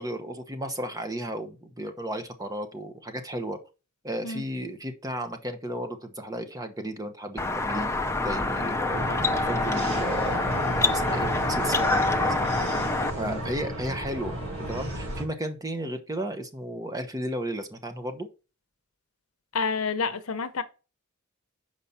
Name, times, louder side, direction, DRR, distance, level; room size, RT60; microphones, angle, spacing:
voice 1, 0.0-3.6 4.0-7.9 8.2-12.3 13.2-14.4 14.7-18.3, right 1 dB, 15° right, 1.0 m, -34 dB
sound 1, 7.4-13.1, left 2 dB, 15° left, 0.6 m, -26 dB
sound 2, 8.9-15.2, right 1 dB, 75° right, 4.0 m, -33 dB
voice 2, 19.5-20.6, left 5 dB, 75° left, 0.9 m, -29 dB
7.0 x 4.9 x 4.1 m
head